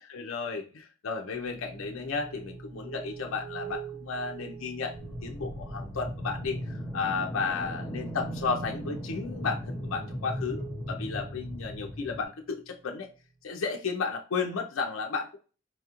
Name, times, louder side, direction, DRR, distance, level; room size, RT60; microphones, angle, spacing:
voice 1, 0.1-4.9 5.2-10.6 10.9-13.1 13.4-15.4, left 5 dB, 85° left, 2 dB, 0.5 m, -33 dB
sound 1, 1.3-12.7, right 6 dB, 50° right, 0.8 m, -44 dB
sound 2, 4.9-12.3, left 1 dB, 5° left, 0.8 m, -38 dB
4.3 x 2.4 x 2.8 m, 0.35 s
head